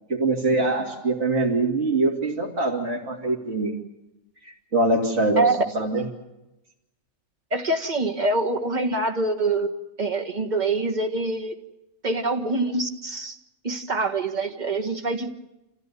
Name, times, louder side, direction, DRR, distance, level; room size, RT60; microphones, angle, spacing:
voice 1, 0.1-3.8 4.4-6.1, right 2 dB, 60° right, -4 dB, 3.3 m, -24 dB
voice 2, 7.5-9.7 10.0-11.6 12.0-13.4 13.6-15.3, right 2 dB, 35° right, 4 dB, 1.8 m, -25 dB
26.5 x 15.5 x 9.8 m, 0.96 s
omnidirectional pair, 1.4 m